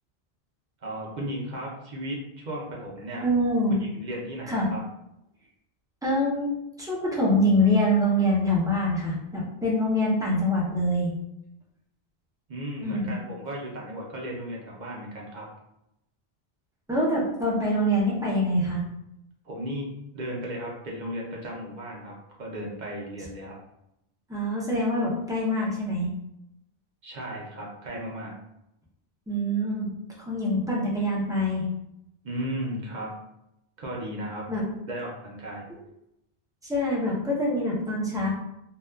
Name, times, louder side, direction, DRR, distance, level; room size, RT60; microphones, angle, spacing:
voice 1, 0.8-3.3 3.8-4.8 12.5-15.5 19.4-19.9 20.1-23.6 27.0-28.3 32.2-33.1 33.8-34.5 34.9-35.7, right 1 dB, 50° right, -2 dB, 0.6 m, -35 dB
voice 2, 3.2-3.8 4.5-4.7 6.0-11.1 12.8-13.1 16.9-18.8 24.3-26.1 29.3-29.9 30.3-31.7 34.5-34.6 35.7-35.8 36.6-38.3, equal, 5° right, -5 dB, 0.4 m, -25 dB
2.7 x 2.3 x 2.2 m, 0.84 s
omnidirectional pair, 1.1 m